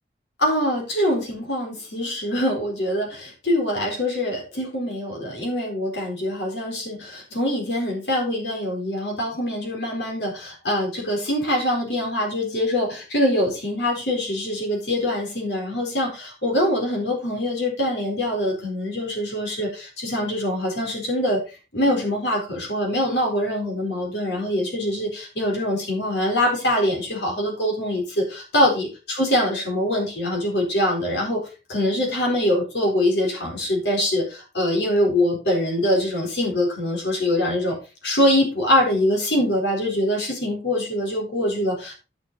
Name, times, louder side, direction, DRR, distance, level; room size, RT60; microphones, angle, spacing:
voice 1, 0.4-21.4 21.7-31.4 31.7-37.8 38.0-41.9, left 1 dB, 85° left, -1 dB, 4.3 m, -24 dB
9.6 x 6.6 x 4.1 m, 0.31 s
head